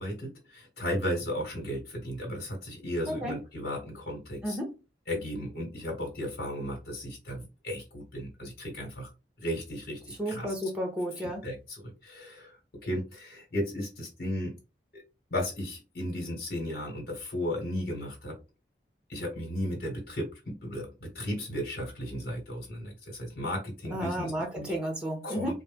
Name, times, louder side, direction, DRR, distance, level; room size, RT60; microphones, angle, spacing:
voice 1, 0.0-4.6 5.1-9.1 9.4-10.5 11.2-14.5 14.9-15.0 15.3-18.4 19.1-24.7 25.2-25.6, equal, 65° left, -1 dB, 1.4 m, -35 dB
voice 2, 3.1-3.4 4.4-4.7 10.2-11.4 23.9-25.6, equal, 5° right, 1 dB, 0.9 m, -32 dB
4.1 x 2.2 x 3.4 m, 0.28 s
head